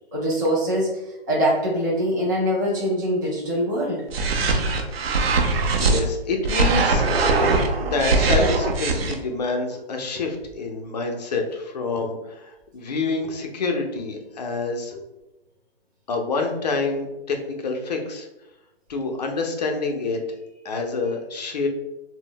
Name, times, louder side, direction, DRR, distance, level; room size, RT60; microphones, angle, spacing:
voice 1, 0.1-0.9 1.3-4.0, equal, 20° right, -5 dB, 0.4 m, -23 dB
sound 1, 4.1-6.0 6.4-9.1, right 3 dB, 75° right, 0.6 m, -21 dB
voice 2, 5.8-7.1 7.8-15.0 16.1-18.3 18.9-20.2 20.6-21.7, left 3 dB, 45° left, 3 dB, 0.4 m, -27 dB
2.0 x 2.0 x 3.7 m, 0.95 s
hypercardioid pair, 155°, 30 cm